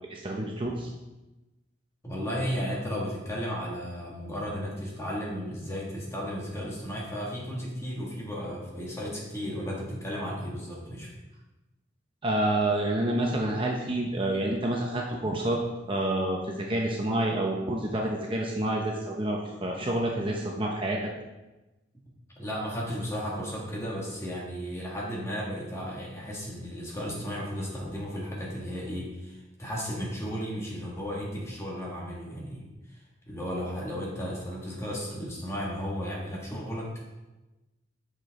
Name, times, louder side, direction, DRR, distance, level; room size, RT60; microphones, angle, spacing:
voice 1, 0.1-0.9 12.2-15.6 15.9-21.0, right 1 dB, 30° right, -1 dB, 0.8 m, -28 dB
voice 2, 2.0-11.1 22.4-33.0 33.3-37.1, equal, 15° left, -4 dB, 1.8 m, -34 dB
8.4 x 6.1 x 3.7 m, 1.1 s
head